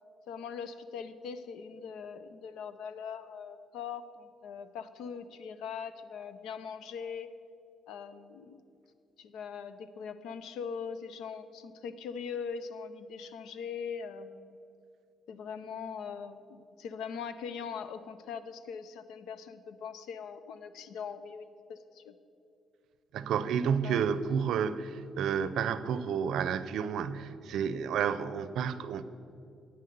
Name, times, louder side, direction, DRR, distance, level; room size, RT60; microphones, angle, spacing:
voice 1, 0.3-7.3 7.9-8.6 9.2-14.6 15.3-22.1 23.8-24.1, left 6 dB, 85° left, 12 dB, 0.6 m, -41 dB
voice 2, 23.1-29.0, right 7 dB, 75° right, 14 dB, 0.5 m, -30 dB
9.4 x 8.8 x 6.7 m, 2.7 s
cardioid pair, 90°, 0 cm